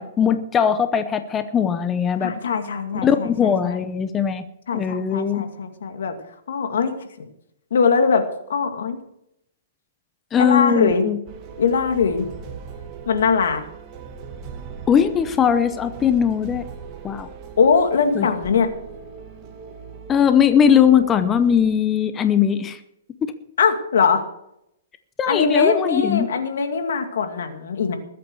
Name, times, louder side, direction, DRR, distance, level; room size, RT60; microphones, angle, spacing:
voice 1, 0.0-2.3 3.0-4.4 4.7-5.4 10.3-11.2 14.9-16.6 17.0-17.3 18.2-18.3 20.1-22.8 23.2-23.3 25.2-26.3, left 8 dB, 15° left, 10 dB, 0.7 m, -19 dB
voice 2, 2.2-3.3 3.6-3.8 4.7-6.1 6.5-6.9 7.7-9.0 10.4-11.0 11.6-12.3 13.1-13.6 17.6-18.7 23.6-24.2 25.3-28.0, left 5 dB, 75° left, 6 dB, 2.3 m, -21 dB
sound 1, 11.3-21.7, right 6 dB, 25° right, 1.9 m, -39 dB
20.5 x 8.6 x 4.8 m, 0.80 s
hypercardioid pair, 155°, 0 cm